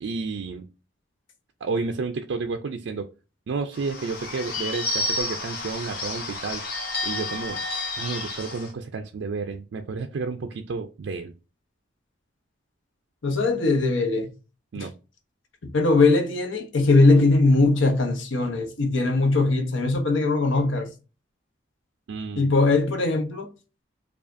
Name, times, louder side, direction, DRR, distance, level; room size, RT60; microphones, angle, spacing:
voice 1, 0.0-0.7 1.6-3.1 3.5-7.6 8.0-11.3 14.7-14.9 22.1-22.5, right 4 dB, 70° right, 0.4 m, -31 dB
Bird / Bell, 3.7-8.7, left 2 dB, 50° left, 0.8 m, -31 dB
voice 2, 13.2-14.3 14.7-14.9 15.6-20.9 22.4-23.5, left 3 dB, 80° left, 0.8 m, -20 dB
4.9 x 2.3 x 2.5 m
head